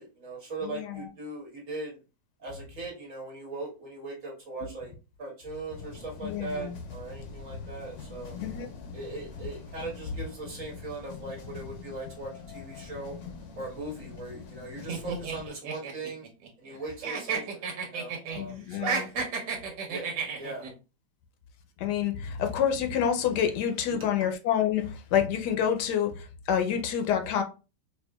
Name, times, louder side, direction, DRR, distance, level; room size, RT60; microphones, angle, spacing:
voice 1, 0.0-2.0 2.4-4.9 5.2-8.3 8.9-13.1 13.6-16.2 16.6-17.6 17.9-19.0 19.6-20.0 20.4-20.7, right 2 dB, 50° right, 1.6 m, -39 dB
voice 2, 0.6-1.1 4.6-4.7 6.2-6.8 8.4-8.7 18.4-19.1 21.8-27.4, left 8 dB, 80° left, 1.2 m, -28 dB
sound 1, 5.7-15.5, left 5 dB, 60° left, 0.8 m, -44 dB
sound 2, 14.9-16.8 17.0-18.4 18.7-20.7, right 5 dB, 85° right, 1.5 m, -32 dB
4.5 x 2.5 x 2.2 m
omnidirectional pair, 1.8 m